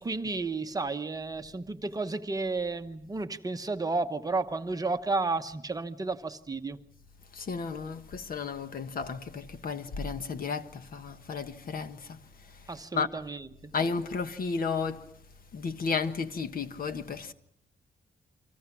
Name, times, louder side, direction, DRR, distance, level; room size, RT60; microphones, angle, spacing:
voice 1, 0.0-6.8 12.7-13.7, right 3 dB, 20° right, 1.0 m, -32 dB
voice 2, 7.3-12.2 12.9-13.1 13.7-15.0 15.5-17.3, left 5 dB, 55° left, 1.4 m, -33 dB
29.5 x 24.5 x 6.1 m
wide cardioid pair, 160°, 18 cm